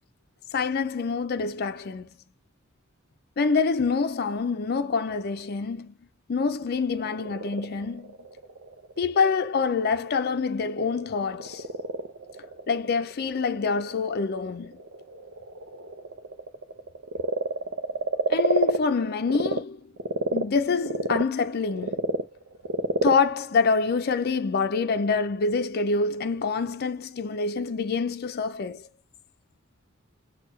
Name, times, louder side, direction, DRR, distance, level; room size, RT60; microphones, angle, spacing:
voice 1, 0.5-2.1 3.4-5.9 6.3-8.1 9.0-11.6 12.7-14.7 18.3-19.8 20.3-22.1 23.0-28.8, left 4 dB, 50° left, 0.5 m, -26 dB
Frog, 6.8-19.6 20.0-24.6, right 3 dB, 85° right, 0.6 m, -31 dB
6.5 x 2.3 x 3.1 m
head